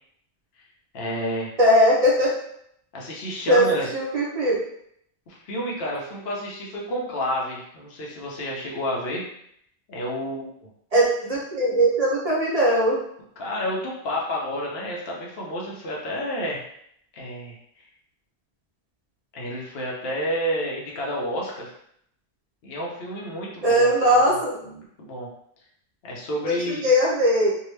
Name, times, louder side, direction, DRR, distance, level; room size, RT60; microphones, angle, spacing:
voice 1, 0.9-1.5 2.9-3.9 5.3-9.2 9.9-10.5 13.4-16.6 17.1-17.6 19.3-21.7 22.6-24.4 24.6-25.3 26.0-26.9, equal, 65° left, -3 dB, 1.0 m, -30 dB
voice 2, 1.6-2.3 3.5-3.6 3.9-4.6 10.9-13.0 23.6-24.5 26.4-27.5, equal, 40° right, -5 dB, 0.9 m, -20 dB
2.7 x 2.3 x 3.1 m, 0.69 s
omnidirectional pair, 1.1 m